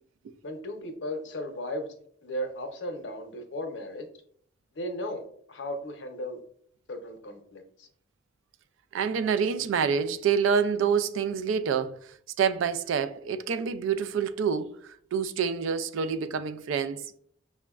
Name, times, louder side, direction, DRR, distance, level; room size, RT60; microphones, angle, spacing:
voice 1, 0.4-1.9 2.2-4.1 4.8-5.2 5.5-6.4 6.9-7.6, equal, 65° left, 0.6 m, -35 dB
voice 2, 8.9-12.0 12.4-17.2, right 6 dB, 85° right, 0.3 m, -27 dB
5.9 x 2.1 x 2.3 m
head